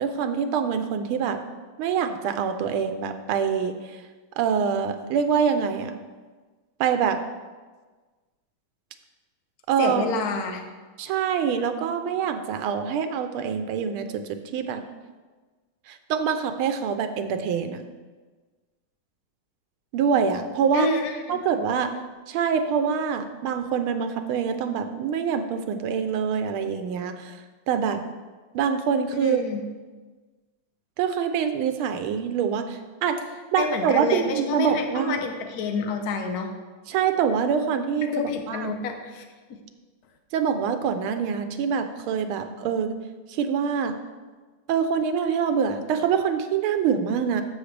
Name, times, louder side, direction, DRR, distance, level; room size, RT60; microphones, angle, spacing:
voice 1, 0.0-1.4 1.8-4.0 4.4-6.0 6.8-7.2 9.7-10.0 11.0-14.8 15.9-17.8 19.9-20.9 21.3-22.0 22.3-27.4 27.7-28.0 28.5-29.4 31.0-33.2 33.5-35.2 36.9-38.1 38.5-38.8 40.3-43.0 43.3-44.0 44.7-47.4, right 7 dB, 85° right, 8 dB, 1.6 m, -25 dB
voice 2, 9.8-10.6 20.7-21.4 29.2-29.6 33.6-36.5 38.0-39.2 39.5-39.6, left 4 dB, 55° left, 4 dB, 1.2 m, -28 dB
13.0 x 6.4 x 3.3 m, 1.3 s
omnidirectional pair, 2.3 m